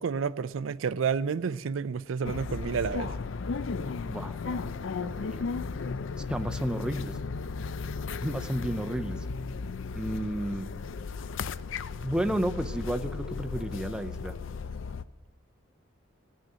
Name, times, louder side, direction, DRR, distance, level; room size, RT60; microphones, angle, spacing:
voice 1, 0.0-3.1, right 6 dB, 80° right, 0.4 m, -30 dB
sound 1, 2.2-15.0, left 4 dB, 75° left, 0.5 m, -35 dB
voice 2, 4.1-5.4 6.3-7.2 8.2-9.2 9.9-10.7 12.0-14.4, right 1 dB, 5° right, 0.5 m, -32 dB
17.5 x 6.3 x 9.3 m
head